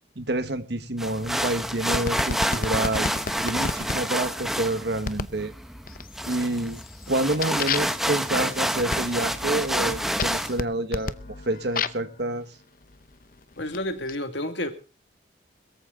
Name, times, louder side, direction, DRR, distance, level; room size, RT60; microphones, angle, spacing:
voice 1, 0.1-3.1 3.4-5.5 6.2-6.8 7.1-12.5, right 2 dB, 60° right, 1.4 m, -28 dB
sound 1, 1.0-10.6, equal, ahead, 0.8 m, -29 dB
sound 2, 1.9-4.0 5.0-5.4 5.9-6.3 6.7-12.1 12.9-14.1, left 4 dB, 45° left, 0.7 m, -32 dB
voice 2, 13.6-14.7, left 1 dB, 70° left, 2.1 m, -30 dB
21.5 x 14.0 x 3.8 m
head